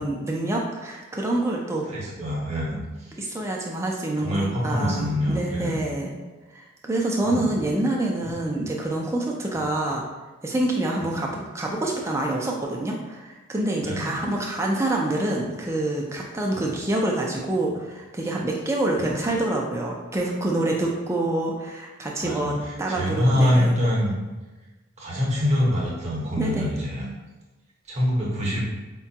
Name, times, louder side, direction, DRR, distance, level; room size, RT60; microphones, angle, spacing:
voice 1, 0.0-1.9 3.2-6.1 6.5-10.1 10.4-23.7 26.4-26.7, right 1 dB, 15° right, -1 dB, 0.4 m, -26 dB
voice 2, 1.9-3.1 4.2-5.8 7.2-7.5 9.6-9.7 11.0-11.2 13.8-14.2 16.5-16.7 19.0-19.1 22.2-22.6 22.9-24.1 25.0-27.1 27.9-28.6, equal, 30° right, -4 dB, 0.8 m, -25 dB
4.7 x 2.2 x 2.7 m, 1.2 s
head